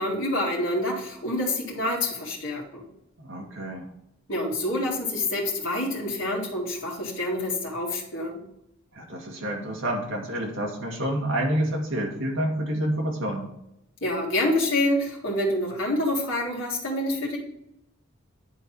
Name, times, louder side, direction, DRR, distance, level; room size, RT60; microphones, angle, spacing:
voice 1, 0.0-2.8 4.3-8.4 14.0-17.4, left 1 dB, 60° left, -5 dB, 2.1 m, -27 dB
voice 2, 3.2-3.8 8.9-13.5, right 1 dB, 60° right, 0 dB, 1.8 m, -28 dB
10.0 x 4.0 x 4.6 m, 0.81 s
head